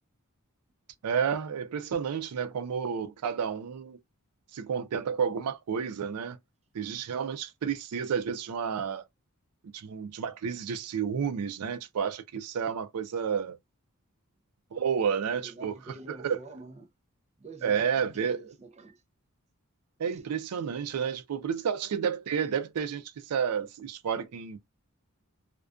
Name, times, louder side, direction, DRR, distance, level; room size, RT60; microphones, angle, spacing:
voice 1, 1.0-4.0 4.5-6.4 6.7-9.0 9.7-13.6 14.7-15.7 16.1-16.4 17.6-18.5 20.0-24.6, right 7 dB, 90° right, 0.4 m, -31 dB
voice 2, 15.4-16.9 17.4-19.0 20.1-20.2, right 2 dB, 30° right, 0.4 m, -47 dB
2.4 x 2.2 x 2.3 m
head